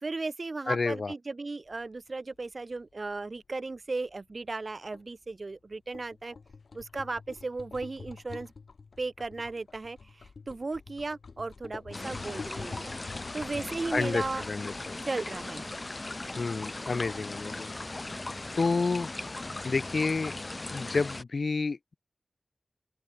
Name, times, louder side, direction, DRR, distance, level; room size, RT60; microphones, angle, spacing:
voice 1, 0.0-6.4 6.7-8.5 9.0-14.5 15.0-15.7, right 3 dB, 50° right, 3.5 m, -36 dB
voice 2, 0.7-1.1 13.9-15.0 16.4-17.7 18.5-19.1 19.6-20.3 20.7-21.8, left 4 dB, 65° left, 1.2 m, -29 dB
sound 1, 1.7-21.2, left 4 dB, 85° left, 3.0 m, -49 dB
sound 2, 11.9-21.2, left 2 dB, 35° left, 1.2 m, -38 dB
open air
wide cardioid pair, 80°, 0 cm